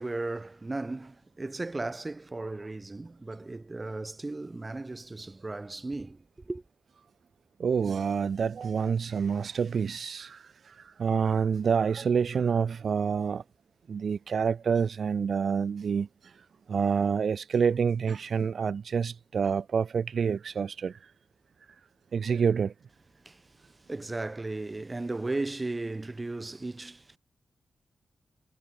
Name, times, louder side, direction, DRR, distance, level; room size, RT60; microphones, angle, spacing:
voice 1, 0.0-6.6 23.3-23.4 23.9-27.2, right 2 dB, 30° right, 7.6 m, -36 dB
voice 2, 7.6-13.4 13.9-21.1 22.1-22.7, right 6 dB, 70° right, 2.0 m, -28 dB
cardioid pair, 55°, 0 cm